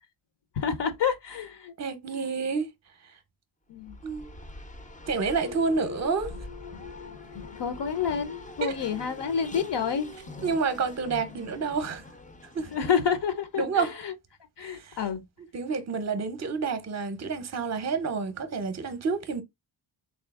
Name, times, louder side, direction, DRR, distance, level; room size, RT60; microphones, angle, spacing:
voice 1, 0.6-1.7 3.7-4.0 7.6-10.1 12.7-14.1 14.6-15.2, left 7 dB, 60° left, 0.6 m, -29 dB
voice 2, 1.8-2.7 4.0-4.3 5.1-6.3 8.6-8.7 10.4-12.0 12.5-12.7 13.6-13.9 14.6-15.0 15.5-19.4, right 4 dB, 35° right, 0.6 m, -29 dB
Race car auto racing, 3.7-13.4, left 2 dB, 15° left, 0.4 m, -44 dB
sound 1, 5.4-10.8, left 8 dB, 85° left, 1.0 m, -46 dB
3.6 x 2.7 x 3.4 m
wide cardioid pair, 180°, 48 cm